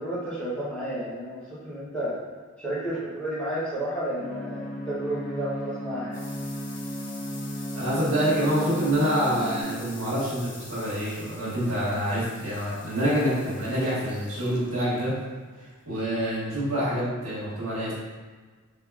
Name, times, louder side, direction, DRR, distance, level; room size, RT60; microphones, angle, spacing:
voice 1, 0.0-2.2 2.6-6.2, right 1 dB, 5° left, -10 dB, 0.7 m, -32 dB
sound 1, 4.2-9.6, equal, 85° left, 1.4 m, -34 dB
sound 2, 5.6-16.7, left 3 dB, 55° left, 0.6 m, -47 dB
voice 2, 7.7-15.1 15.8-17.9, equal, 75° right, -9 dB, 1.5 m, -26 dB
3.6 x 2.9 x 2.3 m, 1.4 s
head